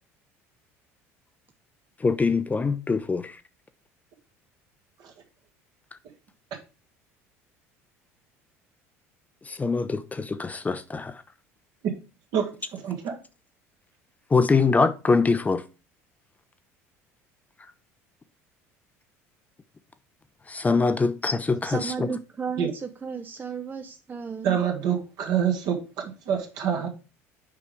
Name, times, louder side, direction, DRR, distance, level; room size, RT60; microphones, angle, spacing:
voice 1, 2.0-3.4 9.5-11.2 14.3-15.6 20.5-22.2, left 4 dB, 20° left, 0.6 m, -24 dB
voice 2, 12.3-13.2 22.6-22.7 24.4-26.9, right 8 dB, 60° right, 1.8 m, -27 dB
voice 3, 21.6-24.6, right 6 dB, 25° right, 0.6 m, -34 dB
6.7 x 5.0 x 3.5 m
hypercardioid pair, 65°, 8 cm